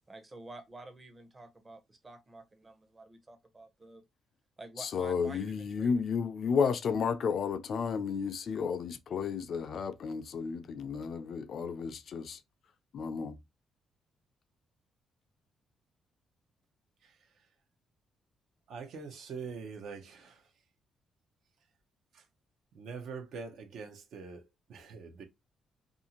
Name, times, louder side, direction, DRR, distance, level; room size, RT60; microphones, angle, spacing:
voice 1, 0.1-4.0 4.6-6.0, right 2 dB, 25° right, 0.7 m, -50 dB
voice 2, 4.8-12.4 12.9-13.4, left 6 dB, 60° left, 0.3 m, -32 dB
voice 3, 18.7-20.4 22.1-22.2 22.7-25.2, right 5 dB, 70° right, 0.6 m, -44 dB
2.6 x 2.4 x 2.8 m
cardioid pair, 90°, 0 cm